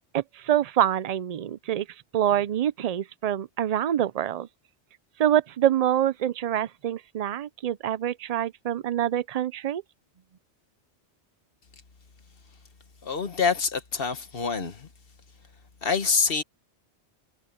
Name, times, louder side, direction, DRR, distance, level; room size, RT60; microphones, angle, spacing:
voice 1, 0.1-1.9 2.1-4.5 5.2-9.8, right 11 dB, 55° right, 0.4 m, -26 dB
voice 2, 13.0-14.9 15.8-16.4, left 5 dB, 55° left, 1.5 m, -26 dB
omnidirectional pair, 1.1 m